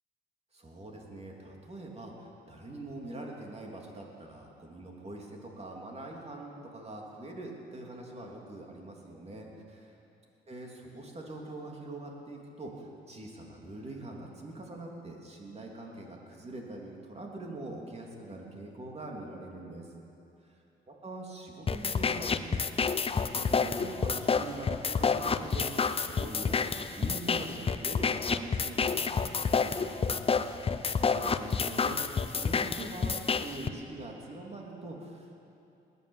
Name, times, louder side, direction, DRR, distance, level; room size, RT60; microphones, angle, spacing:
voice 1, 0.5-9.8 10.5-19.9 20.9-22.6 23.0-30.2 31.0-32.0 32.3-35.4, right 2 dB, 30° right, 0 dB, 3.0 m, -43 dB
sound 1, 21.7-33.7, left 5 dB, 30° left, 0.6 m, -29 dB
20.0 x 9.5 x 7.2 m, 2.8 s
cardioid pair, 90°, 20 cm